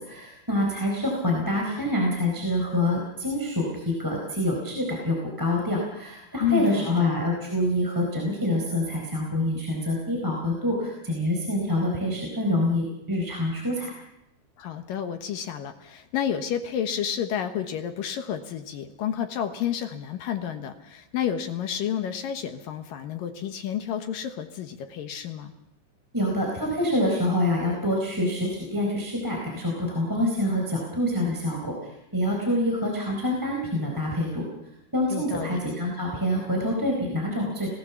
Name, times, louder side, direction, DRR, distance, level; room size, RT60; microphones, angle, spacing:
voice 1, 0.0-13.9 26.1-34.4 34.9-37.8, left 1 dB, 5° right, -1 dB, 3.7 m, -26 dB
voice 2, 6.4-7.1 14.6-25.5 35.1-35.6, left 9 dB, 65° left, 7 dB, 2.6 m, -30 dB
28.0 x 18.5 x 7.1 m, 0.83 s
omnidirectional pair, 4.9 m